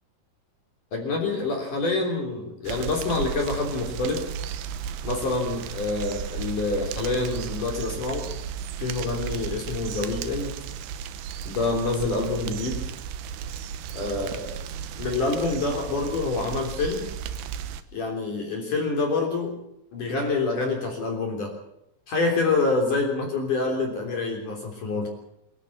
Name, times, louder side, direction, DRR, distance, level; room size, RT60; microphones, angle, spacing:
voice 1, 0.9-4.2 5.0-8.3 8.8-10.6 11.5-12.8 13.9-14.5 15.0-17.1 17.9-19.6 19.9-21.6 22.1-25.1, left 3 dB, 40° left, 1 dB, 4.4 m, -27 dB
sound 1, 2.6-17.8, right 8 dB, 75° right, 2.5 m, -34 dB
24.0 x 14.0 x 8.6 m, 0.80 s
omnidirectional pair, 6.0 m